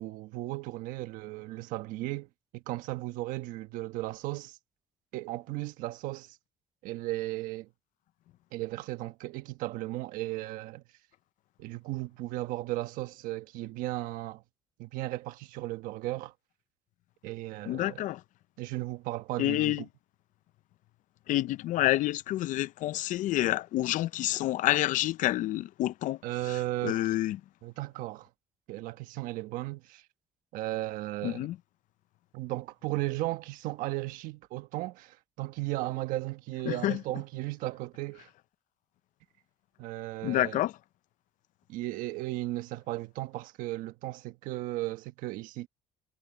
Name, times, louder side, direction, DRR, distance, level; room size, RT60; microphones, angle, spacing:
voice 1, 0.0-2.3 2.5-4.6 5.1-6.4 6.8-7.7 8.5-10.8 11.6-14.4 14.8-16.3 17.2-18.0 18.6-19.9 26.2-27.0 27.6-28.3 28.7-30.0 30.5-31.5 32.3-38.3 39.8-40.6 41.7-45.7, right 18 dB, 90° right, 1.3 m, -35 dB
voice 2, 17.7-18.2 19.4-19.8 21.3-26.2 26.5-27.4 31.2-31.6 36.7-37.0 40.2-40.7, left 15 dB, 70° left, 0.6 m, -28 dB
cardioid pair, 105°, 14 cm